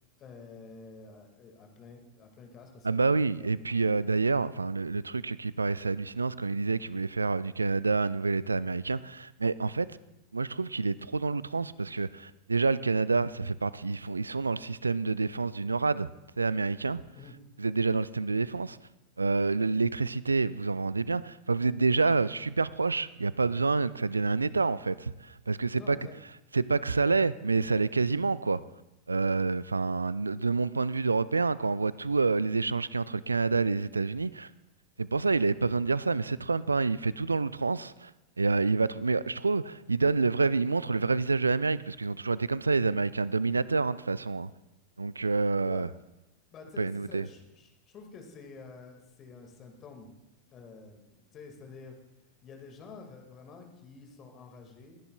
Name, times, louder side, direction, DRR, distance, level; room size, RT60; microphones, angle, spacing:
voice 1, 0.2-3.6 17.1-17.3 25.8-26.1 45.6-45.9 46.5-50.1 50.5-52.0 52.4-55.0, left 4 dB, 30° left, 1.9 m, -49 dB
voice 2, 2.8-9.9 10.3-16.1 16.4-17.0 17.6-18.8 19.2-26.0 26.5-28.6 29.1-34.5 35.0-38.1 38.4-44.5 45.0-45.9 46.8-47.3, right 4 dB, 80° right, 0.3 m, -28 dB
21.5 x 10.5 x 2.3 m
figure-of-eight pair, 90°, 0 cm